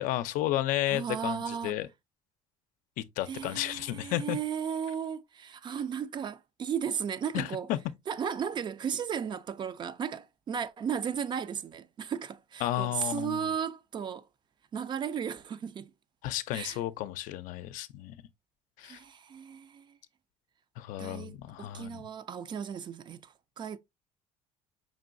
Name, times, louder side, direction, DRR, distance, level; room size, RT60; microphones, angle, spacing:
voice 1, 0.0-1.9 3.0-4.4 7.3-7.8 12.6-13.5 16.2-18.1 18.8-19.0 20.8-22.0, left 14 dB, 80° left, 0.5 m, -32 dB
voice 2, 0.9-1.8 3.3-7.7 8.1-14.3 14.7-15.9 16.5-16.8 18.8-20.0 21.0-23.8, right 7 dB, 35° right, 0.4 m, -35 dB
5.2 x 3.0 x 2.5 m
cardioid pair, 130°, 14 cm